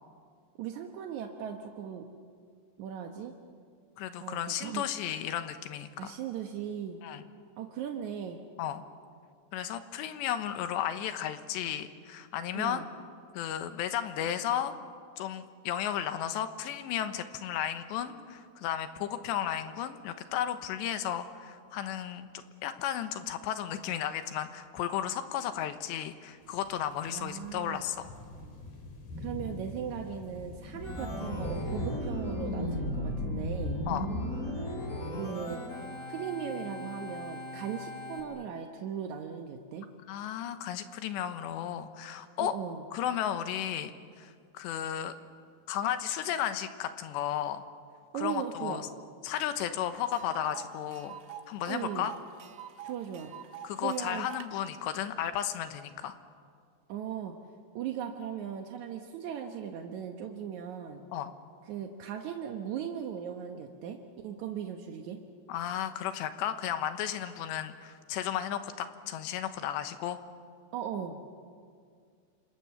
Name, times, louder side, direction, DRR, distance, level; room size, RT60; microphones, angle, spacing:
voice 1, 0.6-2.1 2.8-3.3 4.2-4.8 6.0-7.0 7.6-8.4 12.5-12.9 27.1-27.9 29.2-33.8 35.1-35.6 36.1-39.9 42.4-42.8 48.1-48.9 51.7-52.1 52.8-53.3 53.8-54.3 56.9-57.3 57.8-61.0 61.7-64.0 64.2-65.2 70.7-71.2, right 8 dB, 70° right, 3 dB, 1.8 m, -38 dB
voice 2, 4.0-6.2 7.0-7.2 8.6-8.8 9.5-12.8 13.3-14.7 15.2-28.1 33.9-34.1 40.1-42.6 42.9-43.9 44.2-45.2 45.7-47.6 48.1-48.9 49.2-51.2 51.5-52.1 53.6-56.2 61.1-61.3 65.5-70.2, left 10 dB, 90° left, 9 dB, 3.4 m, -34 dB
sound 1, 26.4-32.0, left 1 dB, 60° left, 5.6 m, -41 dB
Organ, 30.8-38.2, left 1 dB, 20° left, 3.6 m, -36 dB
Tick, 49.6-49.7 50.0-54.5, right 9 dB, 90° right, 3.6 m, -46 dB
29.0 x 26.5 x 7.2 m, 2.2 s
omnidirectional pair, 4.9 m